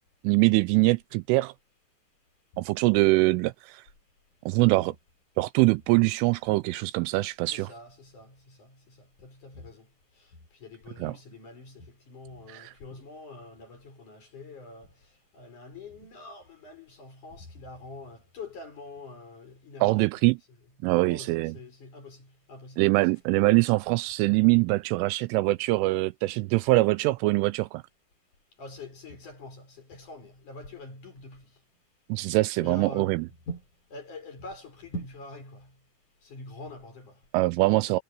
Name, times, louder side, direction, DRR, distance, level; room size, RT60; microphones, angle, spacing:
voice 1, 0.2-1.5 2.6-3.8 4.5-5.0 5.4-7.7 11.0-11.1 12.5-12.7 19.8-20.4 20.8-21.5 22.8-27.8 32.1-33.2 37.3-38.0, right 22 dB, 85° right, 2.9 m, -23 dB
voice 2, 7.5-20.1 21.0-23.1 28.6-31.6 32.6-35.8 36.2-37.3, left 1 dB, 40° left, 7.1 m, -44 dB
omnidirectional pair, 5.8 m